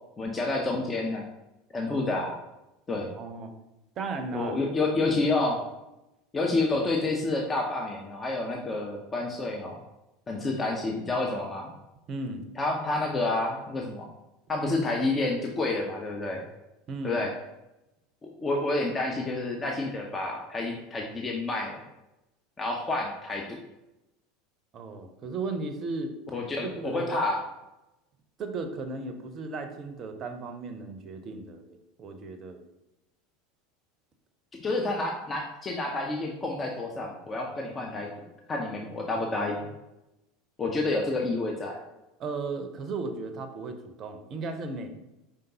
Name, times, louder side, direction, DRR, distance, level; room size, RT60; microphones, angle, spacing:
voice 1, 0.2-1.3 1.7-2.4 2.9-3.1 4.3-5.6 6.3-9.8 10.3-11.7 12.6-14.1 14.5-16.4 17.0-17.3 18.4-21.8 22.6-23.6 26.3-27.4 34.6-38.1 38.5-39.6 40.6-41.8, left 2 dB, 20° left, 1 dB, 0.6 m, -29 dB
voice 2, 3.0-3.5 4.0-4.5 12.1-12.5 16.9-17.3 24.7-26.1 26.6-27.2 28.4-32.6 42.2-44.9, right 3 dB, 35° right, 7 dB, 0.6 m, -35 dB
5.1 x 3.7 x 2.8 m, 0.95 s
figure-of-eight pair, 75°, 0 cm